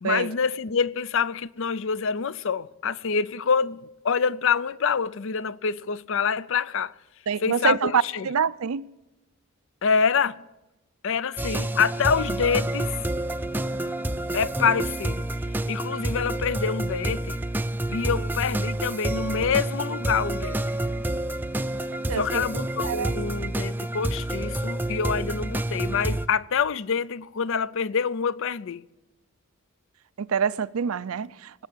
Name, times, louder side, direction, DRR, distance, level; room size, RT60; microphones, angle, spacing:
voice 1, 0.0-6.9 7.4-8.3 9.8-10.4 11.0-13.0 14.3-15.3 15.7-17.4 17.9-20.6 22.1-28.8, left 6 dB, 60° left, 0.5 m, -26 dB
voice 2, 7.3-8.9 21.9-23.1 30.2-31.5, right 7 dB, 80° right, 0.5 m, -26 dB
sound 1, 11.4-26.3, right 1 dB, 10° right, 0.5 m, -29 dB
19.0 x 7.3 x 9.7 m
head